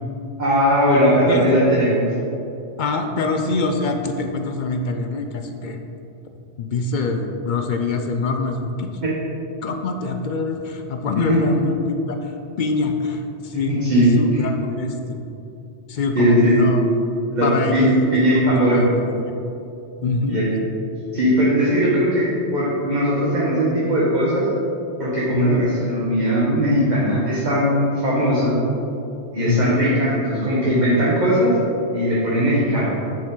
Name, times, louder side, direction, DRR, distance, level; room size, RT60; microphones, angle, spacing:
voice 1, 0.4-2.1 9.0-9.1 11.3-11.4 13.7-14.1 16.1-16.6 17.3-18.8 20.2-20.5 21.1-24.5 25.0-28.6 29.3-31.6 31.9-33.0, equal, 40° right, -7 dB, 1.2 m, -19 dB
voice 2, 2.8-5.8 6.6-8.9 9.6-12.3 12.6-15.2 15.9-16.8 17.4-19.3 20.0-20.4 25.3-25.6 29.5-29.8, left 3 dB, 60° left, 5 dB, 0.5 m, -24 dB
7.1 x 5.1 x 3.8 m, 2.8 s
omnidirectional pair, 1.2 m